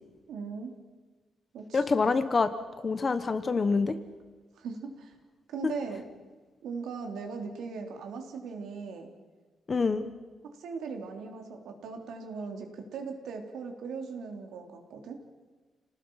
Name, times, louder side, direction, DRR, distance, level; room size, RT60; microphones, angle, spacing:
voice 1, 0.3-0.7 1.5-1.8 4.6-5.1 5.5-6.0 6.6-9.1 10.6-15.2, right 5 dB, 85° right, 3 dB, 3.8 m, -39 dB
voice 2, 1.7-2.5 2.8-3.9 9.7-10.0, left 4 dB, 25° left, 11 dB, 1.1 m, -26 dB
29.5 x 19.0 x 5.8 m, 1.3 s
cardioid pair, 165°, 0 cm